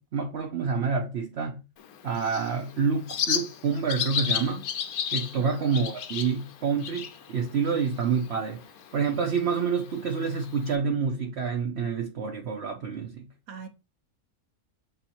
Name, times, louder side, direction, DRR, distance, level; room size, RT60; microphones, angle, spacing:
voice 1, 0.1-1.6 2.0-4.7 5.1-8.6 8.9-13.3, right 5 dB, 55° right, 1.0 m, -28 dB
Bird, 1.8-10.7, left 8 dB, 90° left, 1.2 m, -35 dB
voice 2, 5.4-5.7 13.5-13.7, right 6 dB, 90° right, 1.4 m, -43 dB
7.8 x 2.8 x 4.3 m
omnidirectional pair, 1.5 m